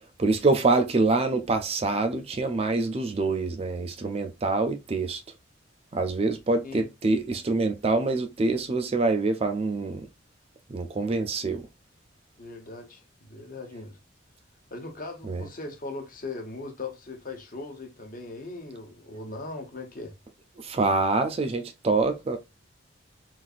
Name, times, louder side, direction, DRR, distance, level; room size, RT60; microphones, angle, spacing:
voice 1, 0.2-5.2 5.9-10.1 10.7-11.6 15.3-15.4 20.6-22.4, right 3 dB, 30° right, 0.3 m, -25 dB
voice 2, 12.4-14.0 14.7-20.1, left 3 dB, 40° left, 0.9 m, -39 dB
4.0 x 2.6 x 2.4 m
head